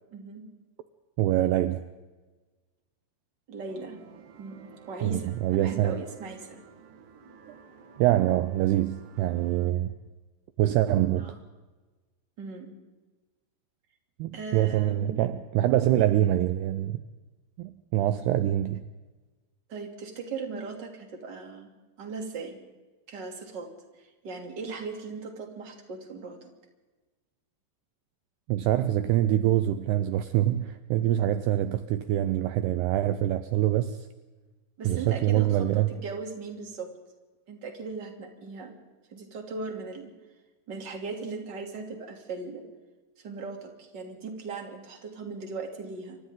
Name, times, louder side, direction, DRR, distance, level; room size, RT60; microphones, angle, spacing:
voice 1, 0.1-0.5 3.5-4.0 4.4-6.6 11.2-11.4 12.4-12.7 14.3-15.2 19.7-21.7 22.0-22.6 23.1-23.7 24.0-26.4 34.8-36.9 37.5-38.7 39.1-40.1 40.7-42.6 43.2-46.2, right 4 dB, 30° right, 3 dB, 3.0 m, -38 dB
voice 2, 1.2-1.9 5.0-6.0 8.0-9.9 10.6-11.4 14.2-17.0 17.6-18.8 28.5-34.0 34.8-35.9, right 13 dB, 75° right, 11 dB, 2.6 m, -25 dB
sound 1, 3.7-9.7, right 6 dB, 55° right, 3.0 m, -52 dB
28.5 x 26.0 x 3.9 m, 1.2 s
omnidirectional pair, 5.1 m